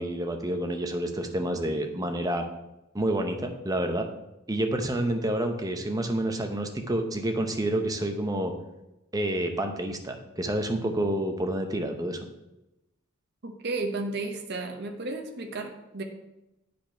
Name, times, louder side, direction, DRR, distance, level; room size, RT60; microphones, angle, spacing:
voice 1, 0.0-2.4 2.9-4.1 4.5-8.5 9.1-12.3, right 1 dB, 20° right, 5 dB, 0.8 m, -28 dB
voice 2, 13.4-16.0, right 3 dB, 55° right, 4 dB, 0.9 m, -33 dB
8.9 x 5.1 x 4.5 m, 0.93 s
head